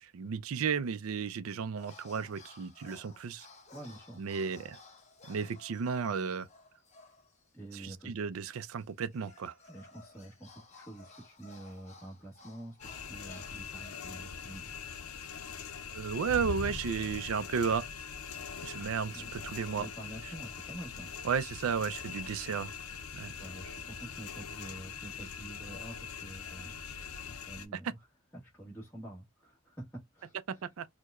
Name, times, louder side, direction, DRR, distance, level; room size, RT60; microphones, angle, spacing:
voice 1, 0.0-3.5 4.2-4.8 5.3-6.5 8.1-9.5 15.9-17.9 18.6-19.9 21.2-22.7 23.1-23.3 30.8-30.9, right 6 dB, 80° right, 0.4 m, -33 dB
sound 1, 1.8-7.5 7.8-7.9 8.8-14.1, left 3 dB, 30° left, 0.8 m, -56 dB
voice 2, 3.7-4.2 4.6-4.7 7.5-8.1 9.7-14.8 18.7-21.1 23.3-26.8 27.2-28.0 28.3-30.7, right 1 dB, 10° left, 1.1 m, -48 dB
sound 2, 12.8-27.7, left 6 dB, 90° left, 0.5 m, -42 dB
4.5 x 2.1 x 2.3 m
head